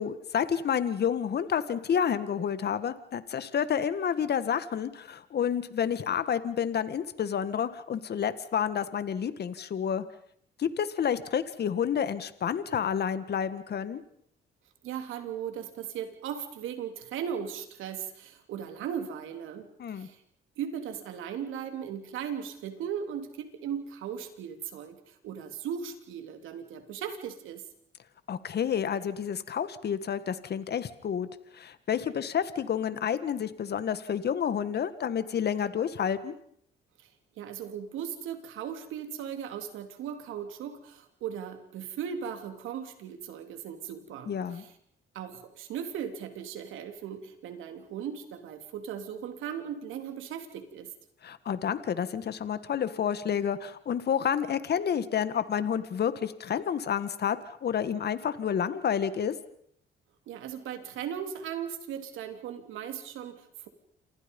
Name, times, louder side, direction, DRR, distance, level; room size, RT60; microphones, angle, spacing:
voice 1, 0.0-10.0 10.6-14.0 19.8-20.1 28.3-31.3 31.5-36.4 44.3-44.6 51.2-59.3, left 8 dB, 55° left, 13 dB, 1.8 m, -29 dB
voice 2, 14.8-19.7 19.9-20.2 20.6-27.6 37.0-37.1 37.4-44.7 45.1-50.9 60.3-63.7, right 8 dB, 90° right, 7 dB, 3.2 m, -37 dB
28.5 x 25.5 x 5.5 m, 0.66 s
cardioid pair, 90°, 20 cm